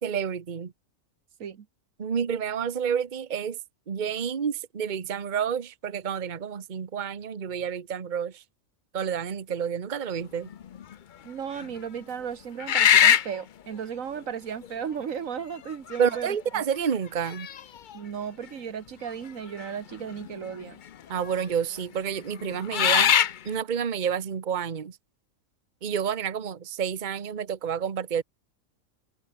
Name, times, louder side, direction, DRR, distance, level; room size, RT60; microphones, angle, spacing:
voice 1, 0.0-0.7 2.0-3.6 3.9-8.4 8.9-10.5 16.0-17.5 21.1-23.2 23.4-25.0 25.8-28.2, right 7 dB, 40° right, 1.1 m, -29 dB
sound 1, 10.5-10.9 11.6-11.7 12.6-13.4 14.6-14.7 15.7-16.2 16.6-16.7 17.3-18.0 19.6-19.7 20.0-20.6 21.3-21.4 22.3-23.4, left 9 dB, 50° left, 0.6 m, -21 dB
voice 2, 11.2-16.3 17.9-20.8, right 7 dB, 80° right, 1.6 m, -35 dB
omnidirectional pair, 1.4 m